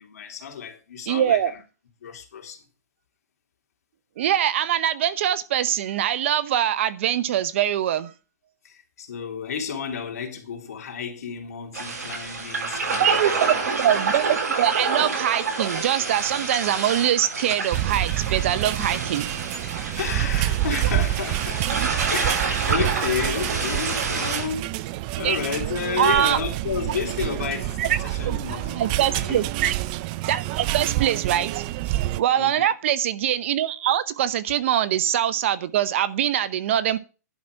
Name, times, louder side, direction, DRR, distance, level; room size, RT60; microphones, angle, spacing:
voice 1, 0.0-1.6 2.0-2.6 8.6-13.6 18.8-18.9 20.0-24.9 25.1-29.5 32.4-32.5, left 7 dB, 65° left, 3.2 m, -32 dB
voice 2, 1.1-1.5 4.2-8.1 13.0-19.3 21.7-21.9 25.2-25.4 26.0-26.4 27.8-28.0 28.2-29.7 30.3-37.0, right 11 dB, 50° right, 0.8 m, -23 dB
sound 1, 11.7-24.5, right 4 dB, 65° right, 7.0 m, -28 dB
sound 2, 17.7-32.2, right 16 dB, 30° right, 0.4 m, -28 dB
11.0 x 6.0 x 6.4 m
hypercardioid pair, 150°, 9 cm